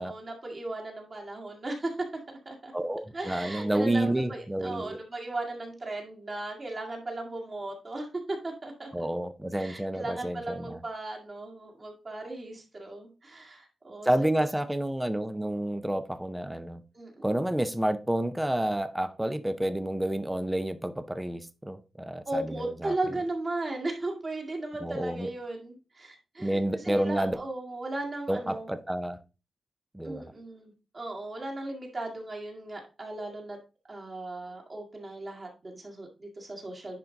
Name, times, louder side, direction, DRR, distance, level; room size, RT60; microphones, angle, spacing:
voice 1, 0.0-2.1 2.5-2.7 3.1-8.9 9.6-14.5 16.9-17.4 22.3-28.7 30.0-33.6 33.9-37.0, right 2 dB, 30° right, 1.9 m, -36 dB
voice 2, 2.7-5.0 8.9-10.8 14.0-16.8 17.2-22.9 24.8-25.3 26.4-27.4 28.3-29.2 29.9-30.2, right 1 dB, 5° right, 0.6 m, -29 dB
10.5 x 3.9 x 3.9 m
wide cardioid pair, 165°, 0 cm